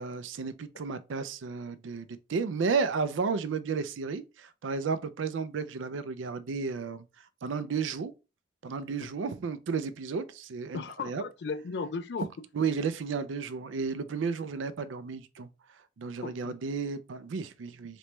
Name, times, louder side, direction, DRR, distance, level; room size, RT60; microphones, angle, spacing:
voice 1, 0.0-7.0 7.4-8.1 8.6-11.2 12.5-15.5 16.0-18.0, right 5 dB, 80° right, 0.4 m, -33 dB
voice 2, 10.7-12.3 16.2-16.6, left 4 dB, 60° left, 0.3 m, -36 dB
3.2 x 3.0 x 3.0 m
head